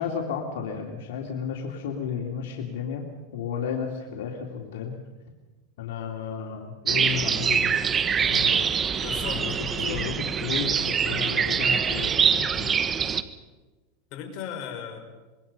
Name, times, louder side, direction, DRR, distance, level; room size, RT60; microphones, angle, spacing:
voice 1, 0.0-3.1 3.3-4.9 5.8-8.8 9.3-9.5 9.8-12.8, left 7 dB, 80° left, 1 dB, 2.8 m, -33 dB
sound 1, 6.9-13.2, right 7 dB, 25° right, 1.2 m, -24 dB
voice 2, 9.0-10.1 14.1-15.1, left 8 dB, 50° left, 3 dB, 5.1 m, -37 dB
25.5 x 22.5 x 5.5 m, 1.2 s
supercardioid pair, 135°, 0 cm